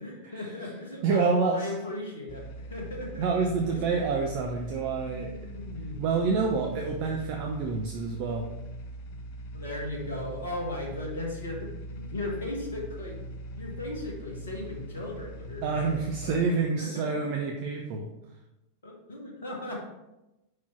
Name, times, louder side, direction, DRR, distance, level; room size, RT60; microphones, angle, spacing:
voice 1, 0.0-1.3 1.5-3.3 3.6-4.0 4.7-6.0 9.5-16.0 16.2-16.4 16.8-17.1 18.8-19.8, left 2 dB, 70° left, -1 dB, 1.3 m, -37 dB
voice 2, 1.0-1.7 3.2-5.5 6.0-8.5 15.6-18.1, right 4 dB, 45° right, 2 dB, 0.6 m, -28 dB
sound 1, 2.3-16.4, right 1 dB, 45° left, 0.8 m, -41 dB
5.5 x 4.8 x 4.4 m, 0.96 s
figure-of-eight pair, 90°, 0 cm